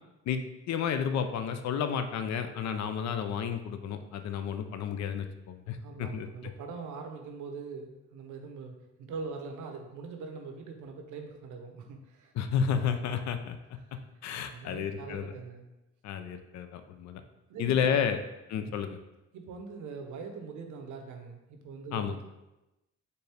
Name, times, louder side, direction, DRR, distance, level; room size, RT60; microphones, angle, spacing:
voice 1, 0.7-6.3 12.3-13.6 14.2-15.3 16.0-17.2 17.6-18.2 18.5-19.0 21.9-22.2, left 7 dB, 65° left, 8 dB, 0.5 m, -31 dB
voice 2, 5.8-12.3 13.8-14.0 14.4-15.7 17.5-18.0 18.6-18.8 19.3-22.3, right 4 dB, 80° right, 5 dB, 0.7 m, -42 dB
4.5 x 2.6 x 3.3 m, 0.97 s
cardioid pair, 90°, 30 cm